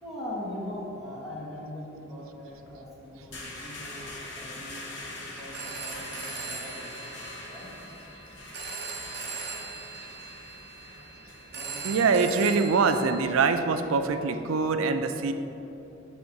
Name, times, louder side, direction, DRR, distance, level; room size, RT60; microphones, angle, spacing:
voice 1, 0.0-7.1 7.5-7.7 11.5-12.0, left 1 dB, ahead, -8 dB, 1.4 m, -41 dB
sound 1, 2.5-14.1, left 2 dB, 60° left, 0.9 m, -44 dB
Telephone, 5.3-13.2, right 5 dB, 50° right, 0.8 m, -40 dB
voice 2, 11.8-15.3, right 4 dB, 90° right, 8 dB, 0.4 m, -24 dB
6.4 x 3.7 x 5.8 m, 3.0 s
head